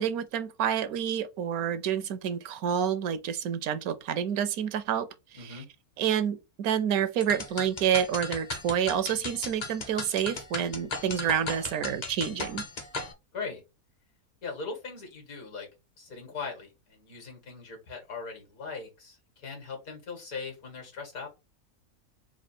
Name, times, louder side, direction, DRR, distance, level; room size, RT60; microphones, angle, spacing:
voice 1, 0.0-5.1 6.0-12.6, right 9 dB, 75° right, 1.0 m, -28 dB
voice 2, 5.3-5.7 13.3-13.6 14.4-15.7 16.0-21.3, left 4 dB, 70° left, 2.1 m, -40 dB
sound 1, 7.2-13.1, left 3 dB, 35° left, 0.7 m, -36 dB
4.3 x 2.3 x 4.3 m
omnidirectional pair, 1.6 m